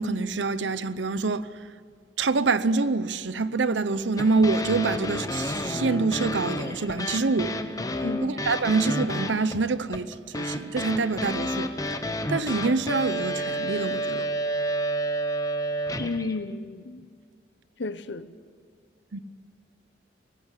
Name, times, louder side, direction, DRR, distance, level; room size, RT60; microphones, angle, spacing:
voice 1, 0.0-1.5 2.2-7.6 8.2-11.7 12.3-14.3 19.1-19.2, right 3 dB, 85° right, 0.8 m, -26 dB
sound 1, 4.2-16.4, equal, 20° left, 0.9 m, -30 dB
voice 2, 8.0-8.4 16.0-17.0 17.8-18.3, left 3 dB, 75° left, 0.9 m, -32 dB
18.5 x 15.0 x 9.7 m
head